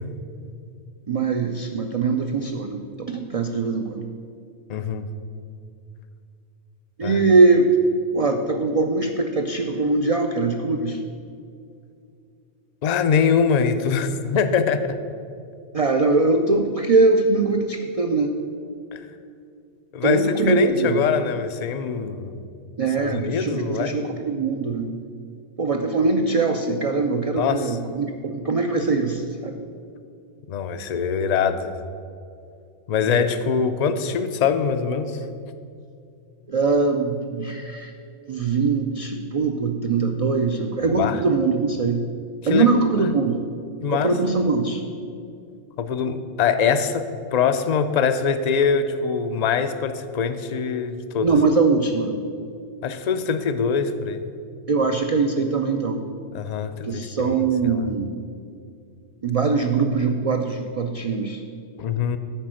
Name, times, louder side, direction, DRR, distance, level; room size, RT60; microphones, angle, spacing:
voice 1, 1.1-4.1 7.0-7.7 8.1-11.0 15.7-18.4 20.0-21.0 22.8-24.9 25.6-29.6 33.1-33.2 36.5-37.9 38.3-42.0 42.5-43.4 43.9-44.8 51.2-52.2 54.7-56.0 56.8-58.1 59.2-61.4, right 3 dB, 65° right, 4 dB, 0.3 m, -22 dB
voice 2, 4.7-5.0 7.0-7.2 12.8-15.0 18.9-19.0 19.9-22.4 23.0-24.0 27.4-27.8 30.5-31.7 32.9-35.2 40.8-41.2 42.5-42.7 43.8-44.1 45.8-51.3 52.8-54.3 56.3-57.8 61.8-62.2, left 6 dB, 60° left, 10 dB, 0.4 m, -23 dB
8.8 x 5.0 x 7.6 m, 2.4 s
omnidirectional pair, 1.3 m